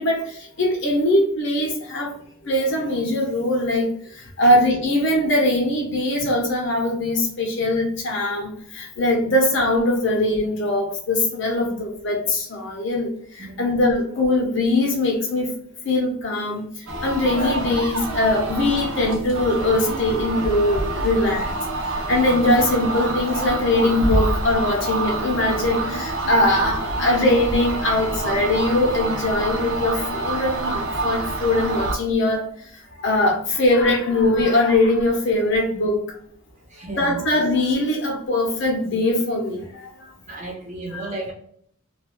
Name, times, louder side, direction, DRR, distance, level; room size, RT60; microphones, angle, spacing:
voice 1, 0.0-2.2 2.4-15.5 15.8-21.5 21.8-36.0 37.0-40.1 40.9-41.0, left 1 dB, 60° left, 0 dB, 0.9 m, -21 dB
voice 2, 13.4-13.8 17.2-17.4 22.1-22.5 26.6-26.7 36.7-37.3 40.3-41.3, right 2 dB, 35° right, -1 dB, 0.9 m, -35 dB
sound 1, 16.9-32.0, right 2 dB, 85° right, 0.7 m, -27 dB
2.6 x 2.3 x 3.0 m, 0.64 s
head